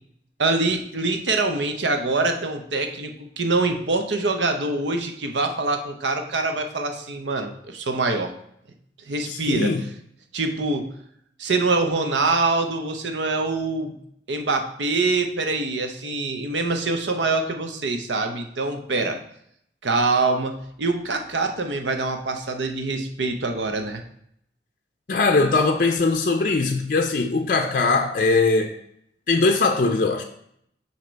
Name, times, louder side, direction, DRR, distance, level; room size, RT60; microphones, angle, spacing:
voice 1, 0.4-8.3 9.1-9.7 10.3-10.9 11.4-14.0 14.3-19.2 19.8-24.0, right 3 dB, 85° right, 0.8 m, -24 dB
voice 2, 9.2-9.8 25.1-28.8 29.3-30.2, left 3 dB, 50° left, 0.5 m, -21 dB
7.5 x 2.9 x 5.2 m
head